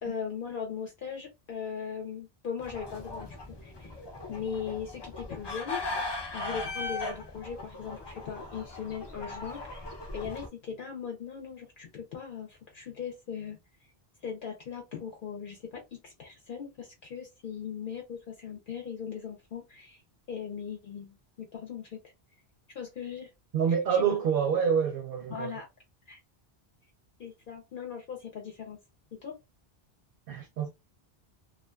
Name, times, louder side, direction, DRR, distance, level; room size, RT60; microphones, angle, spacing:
voice 1, 0.0-3.4 3.6-4.0 4.3-5.8 6.3-9.9 10.1-13.6 14.2-20.0 20.3-22.0 22.7-23.3 23.6-24.0 25.3-25.7 26.1-26.2 27.2-28.8 29.1-29.4, left 7 dB, 60° left, 0.7 m, -39 dB
sound 1, 2.6-10.5, left 2 dB, 40° left, 0.4 m, -39 dB
voice 2, 23.5-25.5 30.3-30.7, right 7 dB, 70° right, 0.7 m, -27 dB
2.4 x 2.3 x 2.2 m
omnidirectional pair, 1.0 m